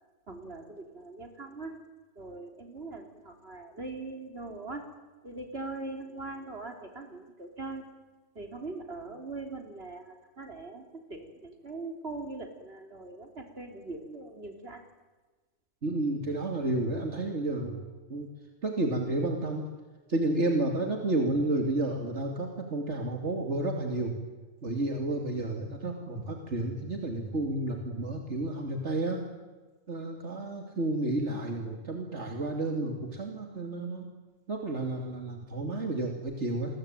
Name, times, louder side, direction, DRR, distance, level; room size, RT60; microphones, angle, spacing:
voice 1, 0.3-1.8 2.2-4.8 5.2-7.8 8.4-14.8, right 3 dB, 60° right, 5 dB, 3.8 m, -41 dB
voice 2, 15.8-17.8 18.1-18.3 18.6-19.7 20.1-24.1 24.6-29.2 29.9-34.1 34.5-36.8, right 2 dB, 75° right, 2 dB, 3.1 m, -31 dB
29.5 x 21.5 x 9.1 m, 1.3 s
omnidirectional pair, 1.2 m